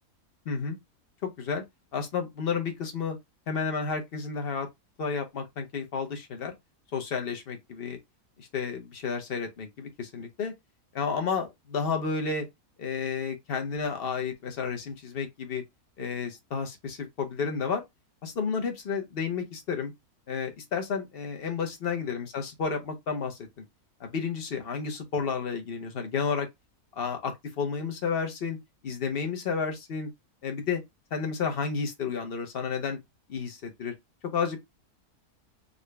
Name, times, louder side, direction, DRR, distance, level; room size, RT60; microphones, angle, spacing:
voice 1, 0.5-0.8 1.2-1.6 1.9-3.2 3.5-4.7 5.0-6.5 6.9-8.0 8.4-10.5 10.9-12.5 12.8-15.6 16.0-17.8 18.2-19.9 20.3-23.4 24.0-26.5 26.9-28.6 28.8-30.1 30.4-30.8 31.1-33.0 33.3-33.9 34.3-34.6, left 5 dB, 50° left, 0.8 m, -31 dB
3.9 x 2.2 x 3.1 m
omnidirectional pair, 1.6 m